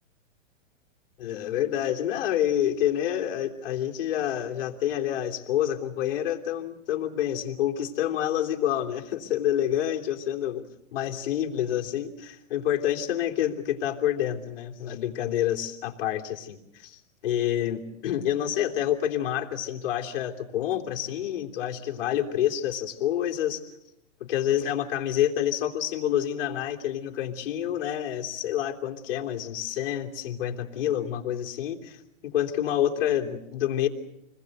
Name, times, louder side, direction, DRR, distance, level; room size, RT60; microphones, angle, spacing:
voice 1, 1.2-10.6 10.9-23.6 24.2-33.9, left 11 dB, 45° left, 1 dB, 3.2 m, -28 dB
27.5 x 21.0 x 8.0 m, 0.85 s
hypercardioid pair, 170°, 39 cm